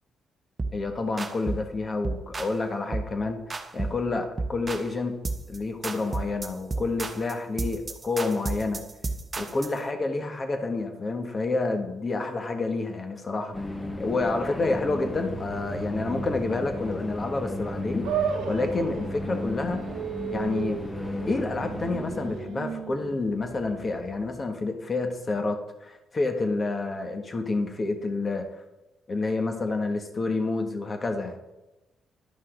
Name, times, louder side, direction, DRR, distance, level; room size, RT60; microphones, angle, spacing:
sound 1, 0.6-0.8 1.2-1.7 2.0-2.6 2.9-3.2 3.5-4.0 4.4-4.9 5.2-5.6 5.8-9.8, right 3 dB, 30° right, 0.7 m, -32 dB
voice 1, 0.7-3.4 3.7-5.2 5.5-8.8 9.4-19.8 20.3-20.8 21.3-28.5 29.1-31.4, left 3 dB, 35° left, 5 dB, 1.4 m, -29 dB
sound 2, 13.5-22.4, left 1 dB, 15° left, 0.9 m, -35 dB
sound 3, 18.0-24.5, right 7 dB, 85° right, 0.9 m, -35 dB
11.5 x 5.5 x 3.9 m, 0.99 s
cardioid pair, 90°, 0 cm